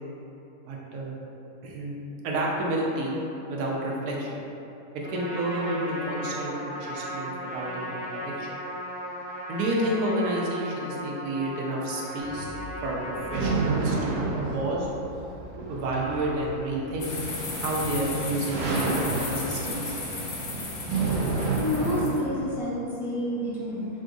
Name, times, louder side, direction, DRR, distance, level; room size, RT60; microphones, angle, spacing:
voice 1, 0.7-1.2 1.6-2.0 2.2-3.2 3.5-4.4 4.9-8.5 9.5-12.6 12.8-14.2 14.5-14.9 15.6-17.1 17.5-20.0 20.5-20.7, right 1 dB, 90° right, -2 dB, 1.2 m, -30 dB
Trumpet, 5.0-14.0, equal, 40° right, 1.0 m, -36 dB
sound 1, 12.2-22.6, right 3 dB, 70° right, 0.6 m, -31 dB
sound 2, 17.0-22.2, left 2 dB, 55° left, 0.7 m, -34 dB
voice 2, 21.5-23.9, left 1 dB, ahead, -11 dB, 0.7 m, -29 dB
3.7 x 3.6 x 2.5 m, 3.0 s
omnidirectional pair, 1.6 m